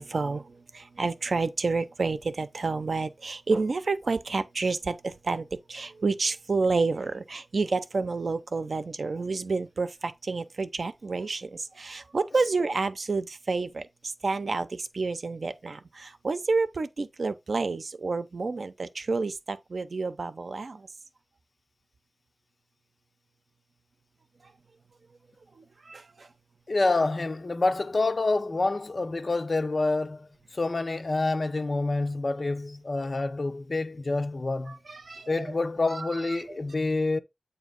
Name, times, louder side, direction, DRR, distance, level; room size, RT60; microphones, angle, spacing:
voice 1, 0.0-20.9 25.5-26.3 34.7-35.5 35.9-36.4, right 3 dB, 80° right, 0.6 m, -30 dB
voice 2, 26.7-34.8 35.3-37.2, left 3 dB, 55° left, 0.7 m, -27 dB
8.3 x 2.8 x 5.2 m
wide cardioid pair, 85°, 0 cm